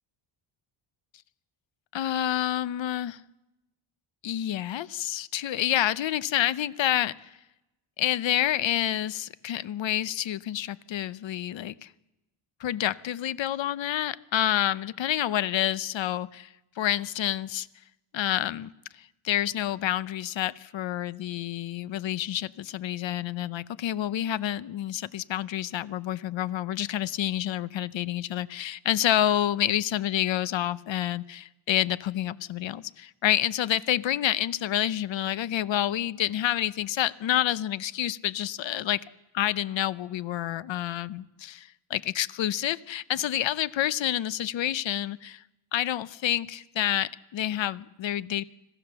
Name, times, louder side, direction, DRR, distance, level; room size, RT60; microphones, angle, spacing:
voice 1, 1.9-3.2 4.2-7.3 8.0-11.9 12.6-16.5 16.8-17.7 18.1-39.1 39.3-45.4 45.7-48.4, left 12 dB, 65° left, 16 dB, 0.8 m, -28 dB
26.0 x 16.0 x 6.9 m, 0.99 s
cardioid pair, 130°, 50 cm